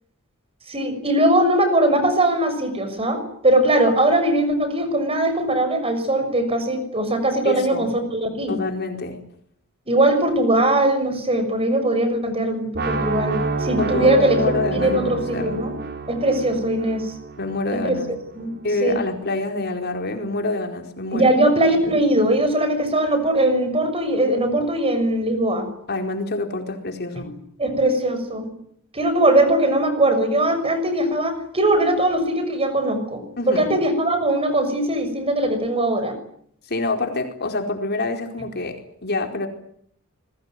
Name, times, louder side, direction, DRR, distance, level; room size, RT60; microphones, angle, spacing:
voice 1, 0.7-8.6 9.9-14.4 14.7-15.7 16.1-17.1 17.8-18.0 18.3-18.5 18.8-19.0 21.1-25.7 27.2-27.3 27.6-28.5 28.9-36.2, right 1 dB, 25° right, 10 dB, 6.4 m, -20 dB
voice 2, 7.4-7.9 8.5-9.2 13.8-15.6 17.4-18.1 18.6-21.3 25.9-27.3 33.4-33.7 36.7-39.5, left 2 dB, 50° left, 4 dB, 4.6 m, -26 dB
sound 1, 12.7-18.7, right 3 dB, 50° right, 4.1 m, -29 dB
27.5 x 22.0 x 9.4 m, 0.68 s
head